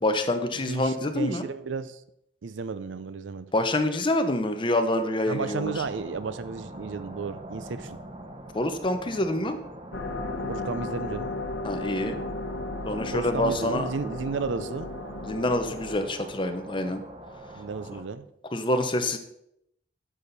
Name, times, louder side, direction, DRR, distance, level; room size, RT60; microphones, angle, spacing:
voice 1, 0.0-1.5 3.5-5.7 8.5-9.6 11.6-12.2 12.9-13.9 15.2-17.0 18.5-19.2, left 1 dB, 25° left, 8 dB, 0.8 m, -26 dB
voice 2, 0.7-2.0 2.4-3.5 5.3-8.0 10.5-11.3 13.1-14.9 17.6-18.2, right 4 dB, 85° right, 14 dB, 0.5 m, -33 dB
sound 1, 5.3-18.0, right 1 dB, 30° right, 1.0 m, -43 dB
sound 2, 9.9-16.0, left 2 dB, 85° left, 0.9 m, -35 dB
9.8 x 7.0 x 4.1 m, 0.78 s
head